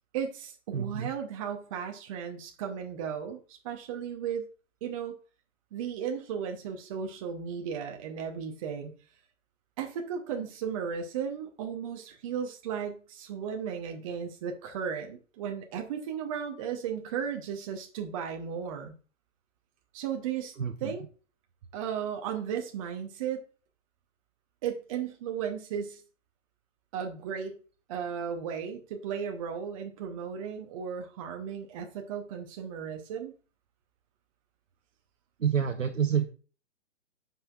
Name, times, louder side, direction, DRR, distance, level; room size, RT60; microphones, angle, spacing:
voice 1, 0.1-4.4 4.8-5.2 5.7-8.9 9.8-18.9 19.9-20.5 20.8-21.0 21.7-23.5 24.6-26.0 26.9-27.6 27.9-33.3, right 7 dB, 25° right, 4 dB, 0.8 m, -35 dB
voice 2, 0.7-1.1 20.6-20.9 35.4-36.3, right 8 dB, 75° right, 5 dB, 0.9 m, -28 dB
9.5 x 5.5 x 2.4 m, 0.38 s
figure-of-eight pair, 125°, 38 cm